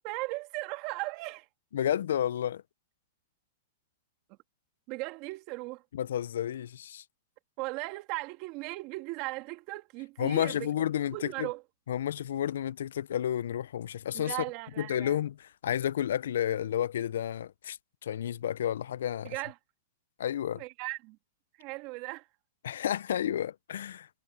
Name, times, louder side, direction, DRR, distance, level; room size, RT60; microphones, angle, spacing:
voice 1, 0.0-1.5 4.9-5.8 7.6-10.7 11.1-11.6 14.1-15.2 19.2-19.5 20.5-21.2 21.6-22.3, right 23 dB, 40° right, 2.3 m, -37 dB
voice 2, 1.7-2.6 5.9-7.0 10.2-11.5 11.9-14.4 14.8-19.3 20.2-20.6 22.6-24.1, left 10 dB, 80° left, 0.3 m, -31 dB
supercardioid pair, 155°, 0 cm